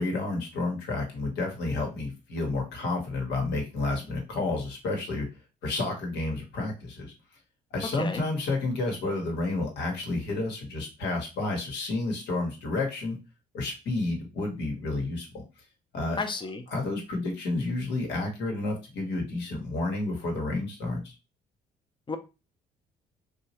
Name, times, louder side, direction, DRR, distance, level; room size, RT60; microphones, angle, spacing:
voice 1, 0.0-5.3 5.6-7.1 7.7-13.2 13.5-15.4 15.9-16.2 16.7-21.1, left 2 dB, 75° left, 1 dB, 1.2 m, -30 dB
voice 2, 16.2-16.6 22.1-22.2, left 4 dB, 25° left, 8 dB, 0.6 m, -31 dB
3.0 x 2.4 x 2.8 m, 0.28 s
supercardioid pair, 60°, 18 cm